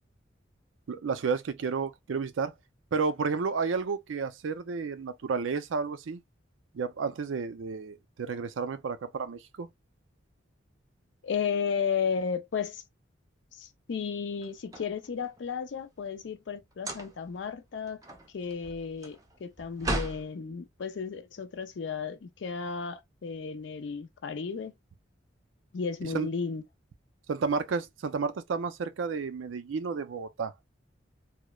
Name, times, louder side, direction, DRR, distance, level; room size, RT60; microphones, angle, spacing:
voice 1, 0.9-2.5 2.9-6.2 6.7-9.7 26.0-26.3 27.3-30.5, right 5 dB, 85° right, 0.4 m, -31 dB
voice 2, 11.2-12.8 13.5-18.0 18.3-24.7 25.7-26.6, left 6 dB, 70° left, 0.4 m, -34 dB
sound 1, 14.3-15.5 16.7-17.4 17.8-20.3, right 1 dB, 20° right, 0.5 m, -36 dB
3.0 x 2.0 x 2.2 m
head